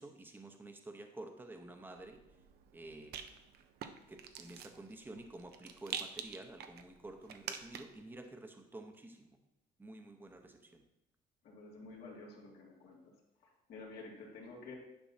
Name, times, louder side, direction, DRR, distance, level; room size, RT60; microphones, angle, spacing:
voice 1, 0.0-2.2 2.7-3.2 4.1-9.4 9.8-10.8, right 2 dB, 10° right, 5 dB, 0.8 m, -50 dB
Rattle, 2.0-8.1, right 8 dB, 70° right, 0.6 m, -47 dB
voice 2, 11.4-13.1 13.4-14.7, left 3 dB, 65° left, -2 dB, 2.0 m, -51 dB
10.5 x 5.4 x 2.7 m, 0.87 s
cardioid pair, 110°, 17 cm